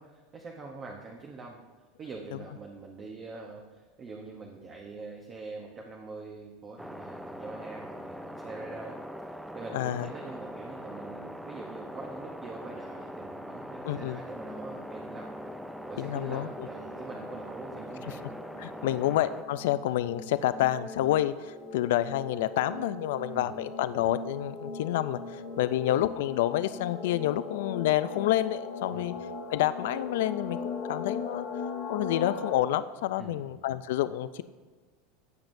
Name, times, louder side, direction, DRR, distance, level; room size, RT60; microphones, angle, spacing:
voice 1, 0.0-1.6 2.0-9.0 9.3-15.3 15.9-18.2 18.9-19.1 23.3-23.6 25.6-25.8 28.9-29.2 33.2-33.5, right 3 dB, 25° right, 1 dB, 0.8 m, -44 dB
sound 1, 6.8-19.4, equal, ahead, 0.3 m, -42 dB
voice 2, 9.7-10.1 13.9-14.2 16.0-16.5 18.6-25.2 25.6-29.1 29.5-31.5 31.9-34.4, left 13 dB, 80° left, 14 dB, 0.3 m, -28 dB
sound 2, 14.2-32.5, left 4 dB, 55° left, 2.2 m, -40 dB
15.0 x 8.8 x 2.6 m, 1.3 s
supercardioid pair, 160°, 0 cm